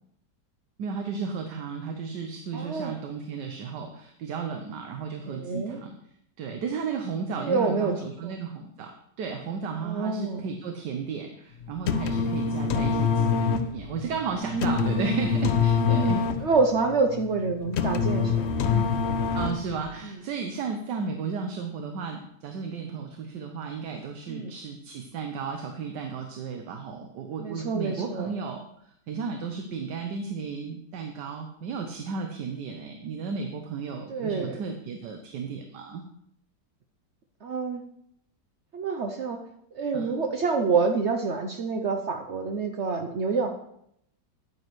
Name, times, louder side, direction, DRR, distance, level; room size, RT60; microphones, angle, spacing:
voice 1, 0.8-6.0 6.4-16.3 19.3-36.0 39.9-40.1, right 5 dB, 80° right, 5 dB, 1.4 m, -34 dB
voice 2, 2.5-2.9 5.3-5.8 7.4-7.9 8.2-8.3 9.8-10.4 14.4-14.9 15.8-18.9 20.0-20.2 24.3-24.5 27.4-28.3 34.1-34.6 37.4-37.8 38.7-39.4 39.7-43.5, right 4 dB, 60° right, 5 dB, 0.7 m, -27 dB
sound 1, 11.6-19.9, left 5 dB, 80° left, 0.6 m, -25 dB
9.7 x 9.1 x 3.1 m, 0.72 s
omnidirectional pair, 1.9 m